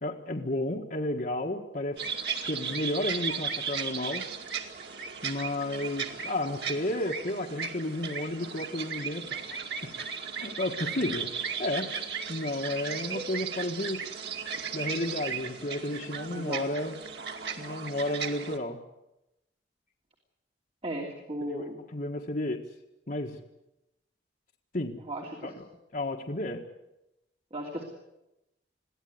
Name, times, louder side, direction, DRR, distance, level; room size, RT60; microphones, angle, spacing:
voice 1, 0.0-2.0 2.5-4.3 5.2-9.6 10.3-11.3 11.6-11.9 12.3-14.0 14.7-17.0 17.6-18.8 21.5-21.6 21.9-22.6 23.1-23.4 24.7-25.0 25.4-25.6 25.9-26.6, left 1 dB, 50° left, 1 dB, 1.7 m, -32 dB
sound 1, 2.0-18.6, right 6 dB, 70° right, 2.3 m, -36 dB
voice 2, 16.3-16.6 20.8-21.8 25.1-25.5 27.5-27.8, right 1 dB, 35° right, 1 dB, 3.1 m, -36 dB
23.0 x 16.0 x 9.6 m, 0.92 s
head